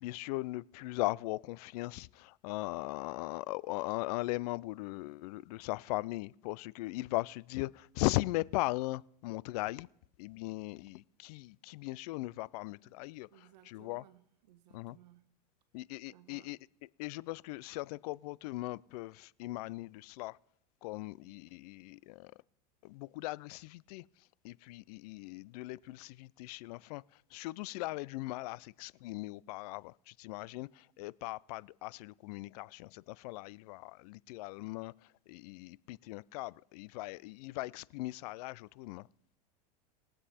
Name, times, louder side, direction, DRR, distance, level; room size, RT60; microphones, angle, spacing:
voice 1, 0.0-9.9 10.2-14.0 14.7-15.0 15.7-16.6 17.0-20.4 20.8-22.3 22.8-24.0 24.4-27.0 27.3-34.9 35.3-39.1, left 20 dB, 65° left, 0.4 m, -39 dB
voice 2, 13.3-15.2 16.1-16.5, right 13 dB, 80° right, 1.2 m, -61 dB
21.0 x 7.7 x 4.2 m
supercardioid pair, 120°, 21 cm